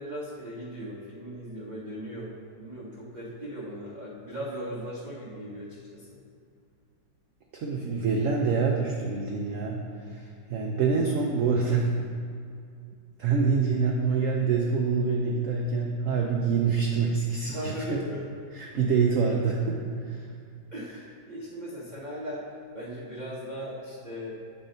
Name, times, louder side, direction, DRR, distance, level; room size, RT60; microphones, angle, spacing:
voice 1, 0.0-6.2 17.5-18.2 20.7-24.4, equal, 45° right, -6 dB, 0.5 m, -38 dB
voice 2, 7.5-11.9 13.2-18.0 18.5-19.8 20.1-20.2, right 5 dB, 85° right, 0 dB, 0.6 m, -26 dB
8.1 x 4.0 x 3.8 m, 2.4 s
omnidirectional pair, 2.0 m